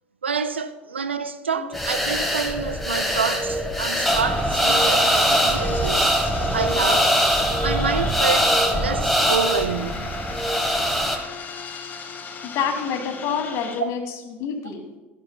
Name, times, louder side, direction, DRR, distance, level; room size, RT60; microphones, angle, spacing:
voice 1, 0.2-6.1 6.5-7.1 7.6-10.1, right 6 dB, 85° right, 0.4 m, -28 dB
sound 1, 1.7-11.2, equal, ahead, 1.3 m, -22 dB
sound 2, 3.6-13.8, left 5 dB, 30° left, 1.0 m, -38 dB
voice 2, 12.4-14.0 14.3-14.8, left 7 dB, 50° left, 1.5 m, -27 dB
13.0 x 9.6 x 2.2 m
figure-of-eight pair, 65°, 6 cm